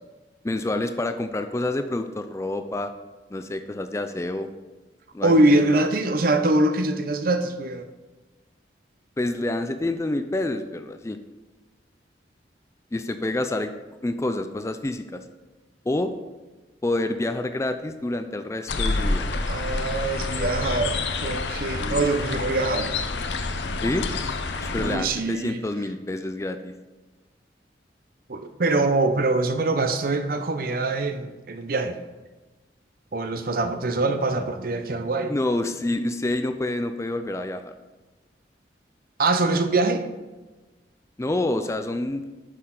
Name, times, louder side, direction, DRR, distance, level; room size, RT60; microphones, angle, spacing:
voice 1, 0.4-2.9 3.3-4.5 5.1-5.9 9.2-11.2 12.9-13.7 14.0-15.2 15.9-16.1 16.8-19.3 21.8-22.1 23.8-24.1 24.6-26.7 35.3-37.7 41.2-42.2, left 2 dB, 15° left, 9 dB, 0.3 m, -28 dB
voice 2, 5.2-7.9 19.5-22.9 24.7-25.6 28.3-32.0 33.1-35.3 39.2-40.0, right 2 dB, 50° right, 8 dB, 0.6 m, -23 dB
sound 1, 18.7-25.0, left 3 dB, 75° left, 0.7 m, -28 dB
9.8 x 6.5 x 3.8 m, 1.2 s
head